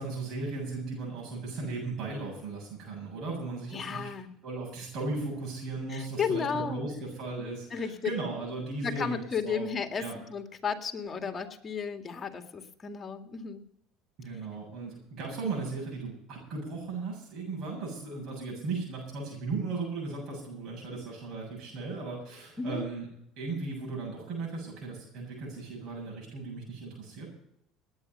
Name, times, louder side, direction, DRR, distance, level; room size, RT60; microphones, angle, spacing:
voice 1, 0.0-4.1 4.4-9.2 9.4-9.6 10.0-10.1 14.2-23.1 23.4-27.3, right 3 dB, 60° right, -2 dB, 7.6 m, -36 dB
voice 2, 3.7-4.3 5.9-6.8 7.7-8.1 8.8-13.7 22.6-22.9, left 6 dB, 30° left, 5 dB, 2.1 m, -33 dB
19.0 x 9.6 x 5.5 m, 0.75 s
hypercardioid pair, 80°, 0 cm